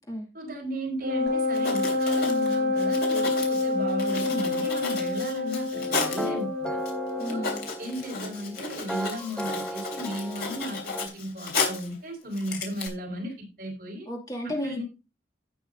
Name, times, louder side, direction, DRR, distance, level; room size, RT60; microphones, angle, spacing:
voice 1, 0.3-6.8 7.3-7.5 7.8-14.1 14.6-14.8, equal, 50° right, 0 dB, 4.8 m, -35 dB
Wind instrument woodwind instrument, 1.0-7.6, left 2 dB, 75° right, 3.4 m, -27 dB
Writing, 1.3-1.4 1.5-6.3 6.8-6.9 7.2-11.9 12.3-12.9, left 4 dB, 60° left, 3.2 m, -33 dB
sound 1, 5.7-11.1, equal, 5° left, 0.8 m, -36 dB
voice 2, 7.2-7.7 14.1-14.8, equal, 20° left, 0 dB, 2.3 m, -33 dB
16.5 x 6.2 x 2.7 m, 0.29 s
head